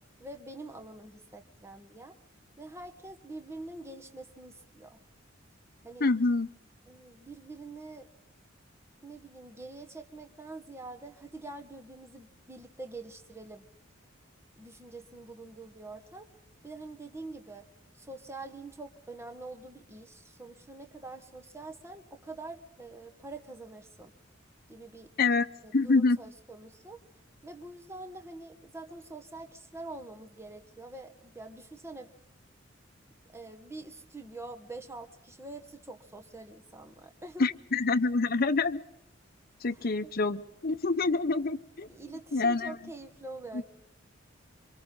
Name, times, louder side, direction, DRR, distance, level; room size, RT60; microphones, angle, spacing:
voice 1, 0.2-2.2 2.6-5.0 5.8-6.1 6.9-8.1 9.0-13.7 14.6-16.3 16.6-17.7 17.9-24.1 24.7-25.1 25.6-27.0 27.4-32.1 33.3-37.5 39.7-40.1 41.9-43.7, right 2 dB, 15° right, 5 dB, 1.3 m, -45 dB
voice 2, 6.0-6.5 25.2-25.5 25.7-26.2 37.4-38.8 39.6-41.9 42.3-42.7, left 3 dB, 50° left, 10 dB, 0.8 m, -26 dB
28.0 x 25.0 x 3.9 m, 0.86 s
head